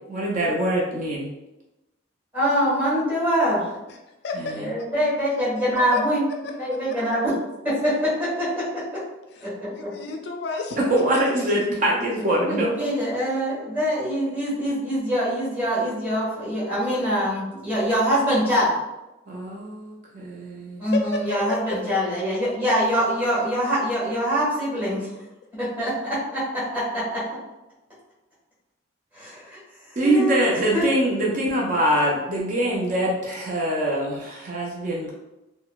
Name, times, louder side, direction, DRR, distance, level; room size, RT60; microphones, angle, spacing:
voice 1, 0.1-1.3 10.9-12.7 19.3-20.8 30.0-35.1, right 1 dB, 45° right, -4 dB, 0.5 m, -23 dB
voice 2, 2.3-3.7 4.6-6.2 6.6-7.3 7.6-8.8 9.4-9.7 12.3-18.7 20.8-25.1 25.6-27.2 29.1-29.6 30.0-30.8, equal, 10° right, -9 dB, 1.4 m, -24 dB
voice 3, 4.2-4.9 5.9-6.0 6.4-7.0 9.3-10.8 11.1-11.2 20.9-22.0, left 3 dB, 60° left, 3 dB, 0.3 m, -32 dB
3.7 x 2.1 x 2.3 m, 1.0 s
head